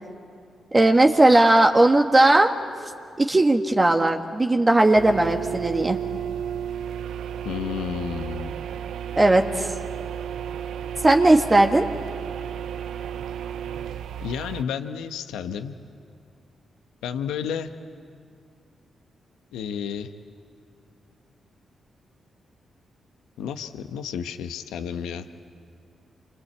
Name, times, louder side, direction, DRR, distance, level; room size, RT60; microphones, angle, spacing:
voice 1, 0.7-2.5 3.2-6.0 9.2-9.7 11.0-11.8, right 2 dB, 30° right, 3 dB, 1.6 m, -17 dB
sound 1, 4.9-14.6, right 9 dB, 80° right, 0.6 m, -33 dB
voice 2, 7.4-8.5 14.2-15.7 17.0-17.7 19.5-20.1 23.4-25.3, left 8 dB, 85° left, 8 dB, 1.1 m, -31 dB
26.5 x 24.5 x 8.4 m, 2.3 s
supercardioid pair, 45°, 0 cm